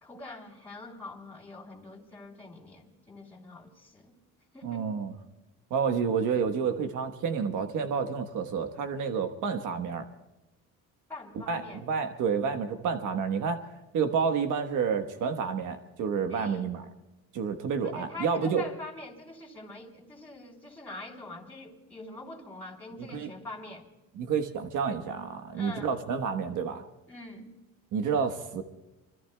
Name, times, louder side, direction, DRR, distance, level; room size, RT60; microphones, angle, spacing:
voice 1, 0.0-4.1 4.5-4.9 11.1-11.8 16.3-16.7 17.8-23.9 25.5-25.9 27.1-27.5, left 2 dB, 5° left, -4 dB, 3.0 m, -44 dB
voice 2, 4.6-5.2 5.7-10.0 11.5-13.6 13.9-16.8 17.3-18.6 23.0-23.3 24.2-26.8 27.9-28.6, right 6 dB, 65° right, 6 dB, 1.3 m, -29 dB
26.5 x 24.0 x 2.3 m, 1.0 s
cardioid pair, 130°, 33 cm